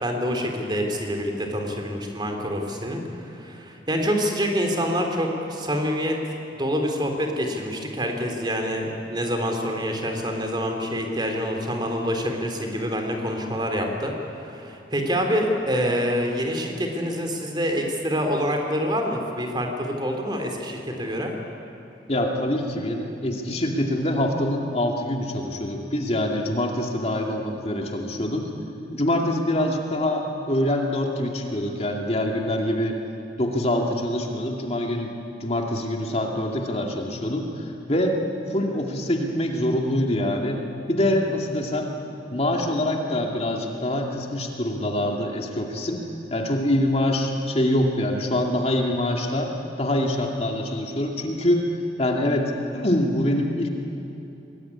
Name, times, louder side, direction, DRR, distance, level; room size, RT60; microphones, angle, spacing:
voice 1, 0.0-6.2 6.5-14.1 14.4-21.3, equal, 25° right, 3 dB, 3.3 m, -26 dB
voice 2, 22.1-28.5 28.9-33.0 33.4-35.1 35.4-38.2 38.5-40.6 40.9-41.9 42.3-46.1 46.3-51.7 52.0-53.7, left 1 dB, 35° left, 1 dB, 2.4 m, -25 dB
25.5 x 20.5 x 9.8 m, 2.9 s
head